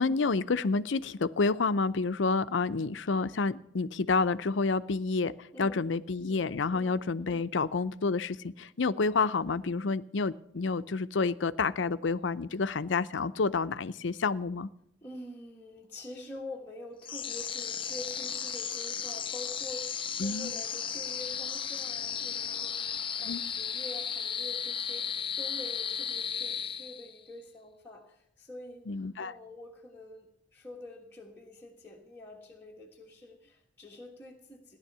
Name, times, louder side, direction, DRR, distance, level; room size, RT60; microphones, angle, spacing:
voice 1, 0.0-14.7 20.2-20.5 23.2-23.4 28.9-29.3, left 4 dB, 70° left, 14 dB, 0.6 m, -29 dB
voice 2, 5.5-6.0 6.7-7.0 15.0-34.8, left 1 dB, 10° left, -3 dB, 1.4 m, -46 dB
sound 1, 17.0-27.3, left 7 dB, 25° left, 0.6 m, -35 dB
16.0 x 11.0 x 6.8 m, 0.75 s
head